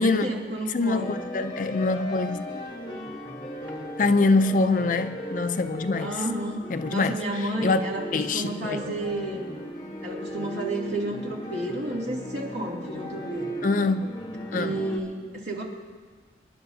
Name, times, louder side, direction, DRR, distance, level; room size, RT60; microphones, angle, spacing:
voice 1, 0.0-1.2 6.0-6.6 6.9-9.4 10.0-13.5 14.5-15.6, right 1 dB, 70° right, 2.7 m, -31 dB
voice 2, 0.7-2.5 4.0-6.1 6.7-7.8 8.1-8.8 13.6-14.1 14.5-14.8, left 3 dB, 45° left, 0.4 m, -24 dB
sound 1, 0.9-15.0, equal, 20° left, 1.2 m, -37 dB
26.5 x 11.0 x 2.7 m
head